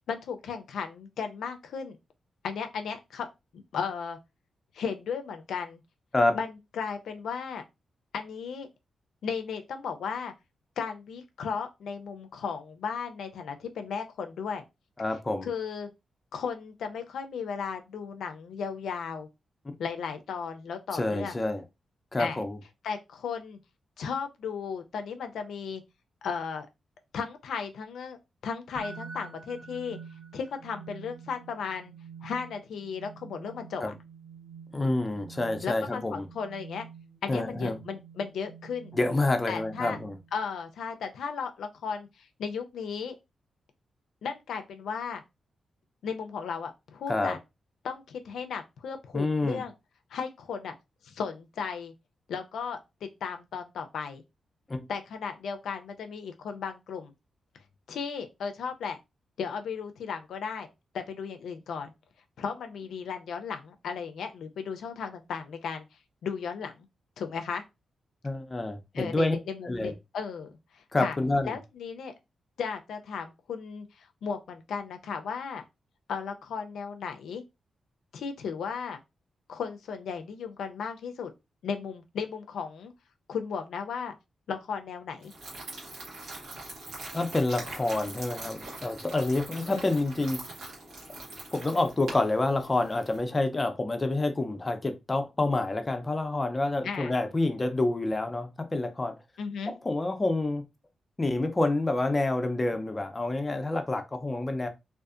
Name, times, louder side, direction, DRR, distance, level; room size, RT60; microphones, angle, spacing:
voice 1, 0.1-2.0 2.4-3.3 3.5-4.2 4.7-5.8 6.3-7.6 8.1-8.7 9.2-10.3 10.8-14.6 15.4-15.9 16.3-19.3 19.8-21.4 22.2-22.4 22.8-23.6 24.0-25.8 26.2-26.7 27.1-28.2 28.4-30.0 30.3-31.9 32.2-33.9 35.6-36.9 37.2-38.9 39.5-40.0 40.3-43.2 44.2-45.2 46.0-47.4 47.8-49.7 50.1-50.7 51.0-51.9 52.3-54.2 54.9-57.1 57.9-59.0 59.4-60.7 60.9-61.9 62.4-65.8 66.2-66.9 67.2-67.6 68.9-71.2 71.5-72.1 72.6-75.6 76.1-77.4 78.1-79.0 79.5-81.3 81.6-82.9 83.3-84.1 84.5-85.3 89.5-89.9 96.8-97.1 99.4-99.7, left 6 dB, 90° left, 0.4 m, -35 dB
voice 2, 15.0-15.5 20.9-21.6 22.1-22.6 33.8-33.9 34.7-36.3 37.3-37.8 38.9-40.2 47.1-47.4 49.1-49.6 54.7-54.8 68.2-69.4 69.6-69.9 70.9-71.5 87.1-90.4 91.5-99.1 99.7-100.6 101.2-104.7, left 2 dB, 25° left, 0.5 m, -28 dB
sound 1, 28.7-40.5, right 6 dB, 55° right, 0.4 m, -47 dB
sound 2, 85.2-93.2, right 2 dB, 85° right, 1.1 m, -43 dB
2.6 x 2.4 x 2.4 m
cardioid pair, 105°, 0 cm